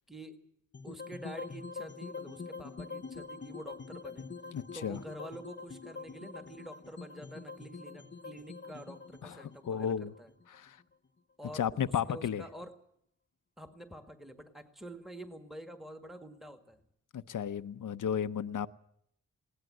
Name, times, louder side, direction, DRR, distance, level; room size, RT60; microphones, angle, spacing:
voice 1, 0.1-0.4 0.8-4.3 4.7-10.3 11.4-12.7 13.6-16.8, right 1 dB, ahead, 7 dB, 1.9 m, -47 dB
sound 1, 0.7-10.9, left 4 dB, 35° left, 0.9 m, -45 dB
voice 2, 4.5-5.0 9.2-10.1 10.5-10.8 11.5-12.4 17.1-18.7, left 8 dB, 75° left, 12 dB, 0.8 m, -34 dB
21.0 x 18.0 x 7.8 m, 0.70 s
wide cardioid pair, 100°, 31 cm